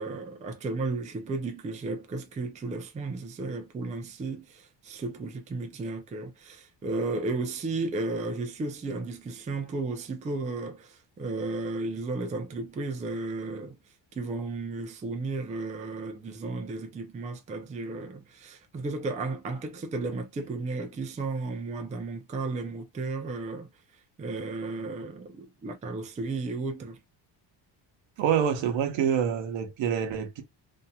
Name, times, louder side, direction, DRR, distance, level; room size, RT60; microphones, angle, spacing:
voice 1, 0.0-13.8 14.2-23.7 24.2-27.0, right 3 dB, 15° right, 0.4 m, -34 dB
voice 2, 28.2-30.4, right 8 dB, 70° right, 0.9 m, -26 dB
2.7 x 2.6 x 2.2 m
cardioid pair, 150°, 47 cm